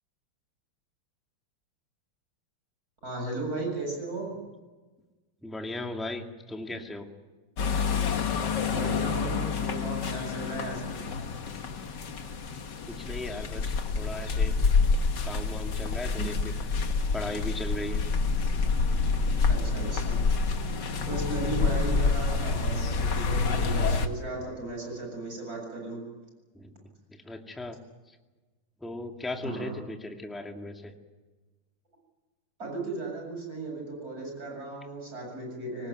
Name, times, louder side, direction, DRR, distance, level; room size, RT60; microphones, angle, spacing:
voice 1, 3.0-4.4 8.7-11.0 16.2-16.3 19.5-20.2 21.1-26.0 29.4-29.8 32.6-35.9, right 2 dB, 40° right, 1 dB, 8.0 m, -36 dB
voice 2, 5.4-7.1 12.9-14.6 15.2-16.3 17.1-18.0 26.6-26.7 27.3-27.8 28.8-30.9, left 2 dB, ahead, 3 dB, 1.9 m, -37 dB
sound 1, 7.6-24.1, left 4 dB, 55° left, 2.0 m, -27 dB
24.5 x 19.0 x 9.5 m, 1.3 s
omnidirectional pair, 2.4 m